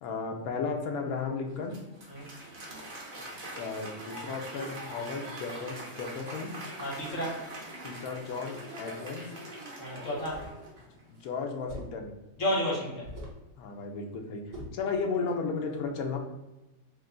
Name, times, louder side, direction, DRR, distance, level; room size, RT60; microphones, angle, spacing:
voice 1, 0.0-1.7 3.5-6.5 7.8-9.2 11.1-12.1 13.6-14.4 14.7-16.2, left 4 dB, 75° left, 3 dB, 1.1 m, -34 dB
Applause, 1.4-11.0, right 1 dB, 45° right, 0.8 m, -43 dB
voice 2, 6.8-7.4 9.8-10.5 12.4-13.1, equal, 60° left, -6 dB, 1.5 m, -31 dB
sound 1, 10.3-10.6 11.7-12.0 13.0-13.5 14.5-14.9, equal, 60° right, 1.4 m, -42 dB
3.4 x 2.2 x 3.7 m, 1.0 s
omnidirectional pair, 1.6 m